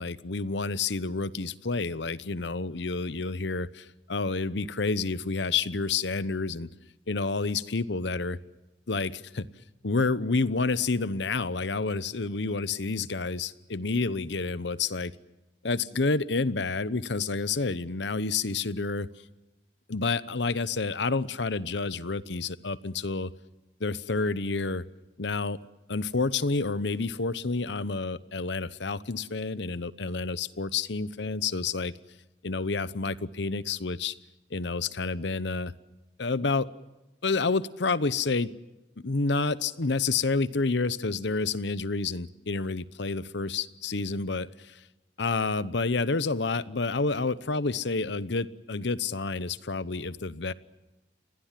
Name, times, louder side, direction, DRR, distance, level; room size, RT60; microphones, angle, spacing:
voice 1, 0.0-6.7 7.1-8.4 8.9-9.4 9.8-15.1 15.6-19.1 19.9-23.3 23.8-24.9 25.2-31.9 32.4-34.1 34.5-35.7 36.2-36.7 37.2-38.5 39.0-44.8 45.2-50.5, left 3 dB, 65° left, 16 dB, 0.9 m, -29 dB
29.0 x 22.0 x 7.5 m, 1.0 s
head